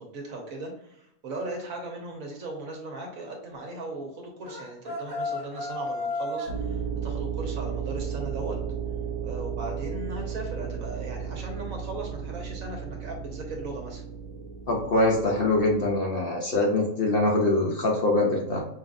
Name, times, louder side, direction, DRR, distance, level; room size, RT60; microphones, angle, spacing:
voice 1, 0.0-8.6 9.2-14.0, right 2 dB, 70° right, 0 dB, 1.4 m, -38 dB
sound 1, 4.4-6.6, left 2 dB, 20° right, 0.6 m, -32 dB
sound 2, 6.5-15.9, right 7 dB, 20° left, 0.9 m, -34 dB
voice 2, 14.7-18.6, left 2 dB, 50° left, -2 dB, 0.8 m, -23 dB
5.5 x 2.5 x 2.5 m, 0.77 s
omnidirectional pair, 1.5 m